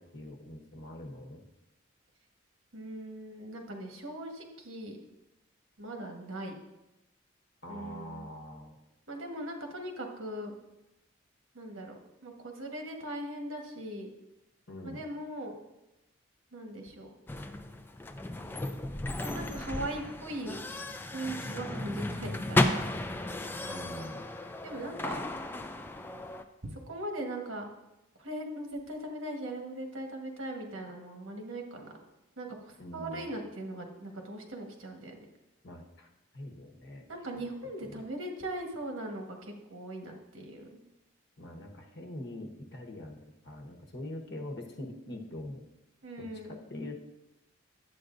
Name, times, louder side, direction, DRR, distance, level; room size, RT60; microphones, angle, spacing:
voice 1, 0.0-1.5 7.6-8.7 14.7-15.0 23.6-24.2 32.8-33.3 35.6-36.1 36.3-37.0 37.3-38.0 41.4-45.6 46.2-47.0, left 1 dB, 55° left, 2 dB, 1.0 m, -44 dB
voice 2, 2.7-5.0 5.8-6.5 7.7-8.3 9.1-10.5 11.5-14.1 14.8-15.5 16.5-17.1 19.2-20.6 21.1-22.8 24.6-25.2 26.7-27.7 28.2-31.9 32.4-35.2 37.1-40.8 46.0-46.6, right 1 dB, 90° right, 2 dB, 1.3 m, -39 dB
sound 1, 17.3-26.4, left 2 dB, 10° left, 0.3 m, -34 dB
10.5 x 8.0 x 2.6 m, 0.95 s
head